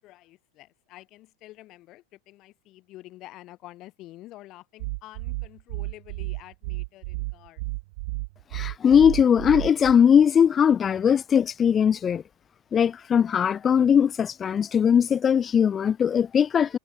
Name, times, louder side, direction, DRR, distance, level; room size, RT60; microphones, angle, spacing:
voice 1, 0.0-7.6, left 17 dB, 45° left, 6.1 m, -48 dB
sound 1, 4.8-9.9, right 25 dB, 60° right, 0.8 m, -32 dB
voice 2, 8.5-12.2 12.7-16.8, left 8 dB, 25° left, 0.3 m, -20 dB
hypercardioid pair, 115°, 0 cm